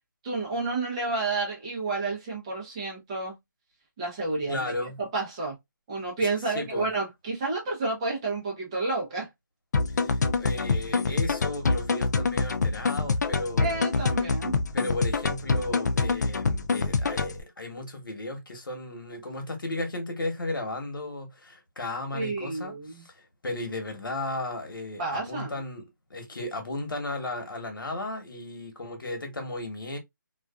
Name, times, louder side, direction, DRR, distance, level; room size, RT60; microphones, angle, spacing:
voice 1, 0.2-3.3 4.0-4.6 5.0-5.5 5.9-9.3 13.6-14.6 22.1-23.1 25.0-25.6, right 3 dB, 15° right, 0.6 m, -30 dB
voice 2, 4.5-5.0 6.4-6.9 9.9-13.8 14.7-25.8 26.1-30.0, left 2 dB, 85° left, 1.1 m, -35 dB
sound 1, 9.7-17.4, left 4 dB, 55° left, 0.4 m, -26 dB
2.4 x 2.3 x 2.2 m
hypercardioid pair, 170°, 11 cm